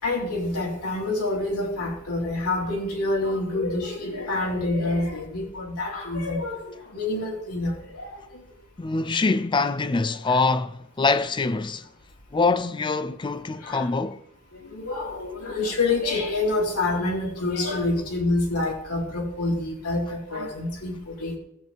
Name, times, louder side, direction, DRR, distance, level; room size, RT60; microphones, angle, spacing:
voice 1, 0.0-8.2 10.2-10.4 13.6-13.9 14.6-21.4, left 2 dB, 85° left, 3.6 m, -27 dB
voice 2, 8.8-11.9 12.3-14.2, left 3 dB, 20° left, 0.4 m, -24 dB
15.5 x 7.9 x 3.6 m
head